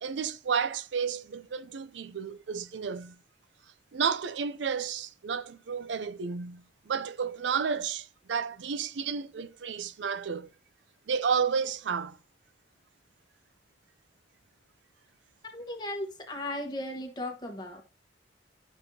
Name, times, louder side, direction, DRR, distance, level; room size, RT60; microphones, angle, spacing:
voice 1, 0.0-3.2 3.9-10.5 11.1-12.2, right 6 dB, 85° right, 0.5 m, -31 dB
voice 2, 15.4-17.8, left 1 dB, 25° left, 1.4 m, -36 dB
11.0 x 6.1 x 2.8 m
head